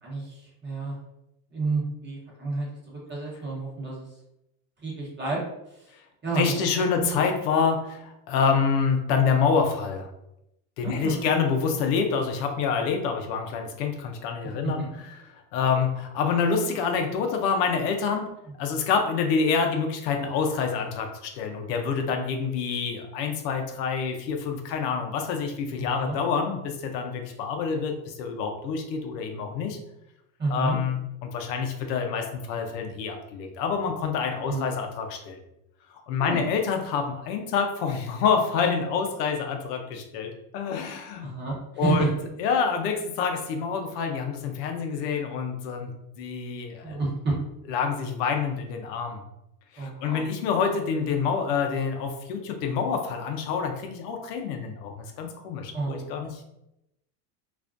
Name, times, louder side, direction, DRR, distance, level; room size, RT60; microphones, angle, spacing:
voice 1, 0.0-0.9 1.5-4.1 4.8-5.4 5.7-5.9 6.2-6.5 7.0-7.1 10.8-11.3 14.4-14.5 25.8-26.2 30.4-30.8 34.4-34.6 36.2-36.5 41.2-42.1 46.8-47.3 49.8-50.2 55.7-56.3, right 3 dB, 20° right, -5 dB, 0.9 m, -30 dB
voice 2, 6.4-10.1 10.8-14.8 15.3-18.3 18.6-29.8 30.5-35.4 35.9-41.3 41.8-42.1 42.4-47.0 47.7-49.2 49.7-56.4, left 6 dB, 80° left, 4 dB, 0.6 m, -27 dB
2.4 x 2.1 x 2.4 m, 0.85 s
supercardioid pair, 115°, 48 cm